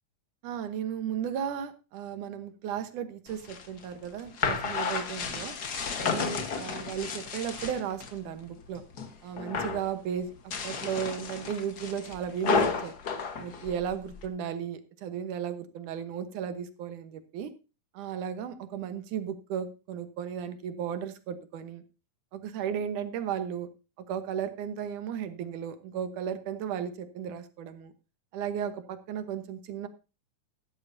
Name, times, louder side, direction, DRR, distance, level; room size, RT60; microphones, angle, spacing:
voice 1, 0.4-5.5 6.0-8.8 9.2-12.9 13.4-17.5 17.9-21.8 22.3-23.7 24.0-27.9 28.3-29.9, right 8 dB, 75° right, 10 dB, 2.6 m, -35 dB
sound 1, 3.3-8.2 8.5-9.1 9.4-9.9 10.4-14.3, left 5 dB, 50° left, 1.2 m, -32 dB
15.5 x 12.0 x 2.7 m, 0.31 s
omnidirectional pair, 3.6 m